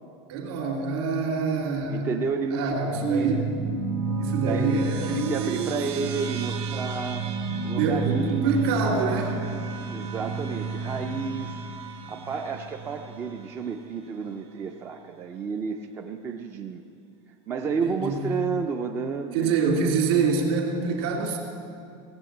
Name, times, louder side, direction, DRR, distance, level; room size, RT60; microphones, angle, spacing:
voice 1, 0.3-2.1 2.5-3.4 4.2-5.8 7.8-9.4 17.8-18.2 19.3-21.4, right 4 dB, 55° right, 0 dB, 2.5 m, -26 dB
voice 2, 1.9-2.8 3.0-3.3 4.2-4.7 5.1-7.2 7.6-8.8 9.9-11.6 12.1-16.8 17.5-19.5, right 5 dB, 15° right, 4 dB, 0.3 m, -31 dB
sound 1, 2.9-13.7, right 4 dB, 70° right, 1.7 m, -31 dB
17.0 x 7.8 x 7.7 m, 2.4 s
supercardioid pair, 175°, 15 cm